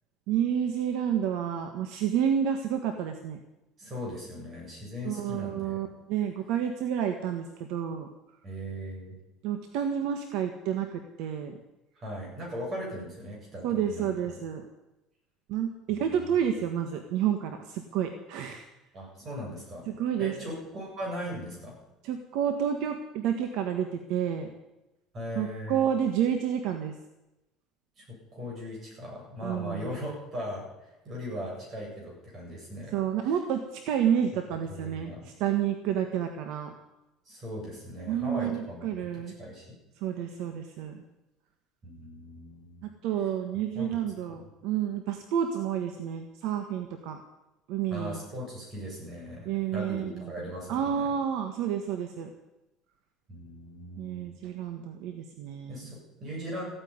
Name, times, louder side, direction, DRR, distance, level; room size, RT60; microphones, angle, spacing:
voice 1, 0.3-3.4 5.0-8.1 9.4-11.6 13.6-14.6 15.5-18.6 19.9-20.3 22.0-24.5 25.3-26.9 29.4-29.9 32.9-35.1 35.4-36.7 38.1-39.3 40.0-41.0 42.8-47.2 47.7-48.2 49.4-50.3 50.7-52.3 54.0-55.9, right 9 dB, 65° right, 6 dB, 1.5 m, -30 dB
voice 2, 3.8-5.8 8.4-9.1 12.0-14.4 15.9-16.5 18.9-19.9 20.2-21.8 25.1-25.8 28.0-32.9 33.2-33.4 34.7-35.3 37.3-38.9 39.4-39.8 41.8-42.8 43.5-44.0 44.3-44.5 47.9-51.1 53.3-54.2 55.7-56.6, equal, 30° right, -2 dB, 7.9 m, -39 dB
15.0 x 9.2 x 9.7 m, 0.96 s
cardioid pair, 160°, 0 cm